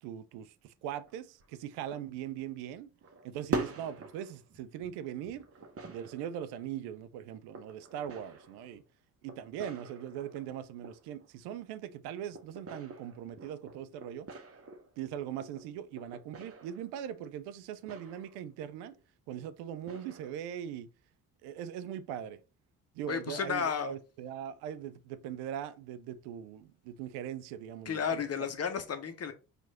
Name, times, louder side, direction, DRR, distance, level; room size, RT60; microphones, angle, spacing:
voice 1, 0.0-2.9 3.2-5.4 5.9-8.8 9.2-14.3 15.0-19.0 19.3-20.9 21.4-22.4 22.9-28.2, right 10 dB, 60° right, 0.6 m, -40 dB
sound 1, 1.1-1.6 1.9-2.5 3.0-4.9 5.2-6.5 7.5-8.8 9.3-11.3 12.3-15.0 15.4-17.0 17.9-18.4 18.9-19.0 19.8-20.3, right 3 dB, 30° right, 1.0 m, -43 dB
voice 2, 23.1-23.9 27.9-29.3, left 6 dB, 35° left, 0.8 m, -33 dB
4.6 x 2.6 x 4.1 m
figure-of-eight pair, 45°, 45 cm